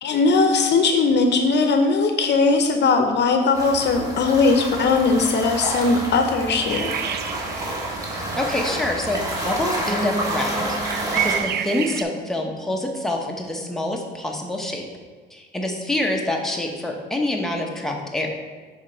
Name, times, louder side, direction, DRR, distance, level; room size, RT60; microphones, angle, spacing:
voice 1, 0.0-6.9, left 4 dB, 60° left, 5 dB, 0.6 m, -19 dB
sound 1, 3.5-11.4, right 1 dB, 15° right, 1.5 m, -29 dB
sound 2, 6.7-12.0, right 9 dB, 55° right, 0.4 m, -31 dB
voice 2, 8.4-14.8 15.3-18.3, left 1 dB, ahead, 0 dB, 0.9 m, -26 dB
Bass guitar, 9.9-13.7, left 1 dB, 20° left, 0.4 m, -36 dB
6.2 x 4.2 x 3.9 m, 1.5 s
cardioid pair, 90°, 20 cm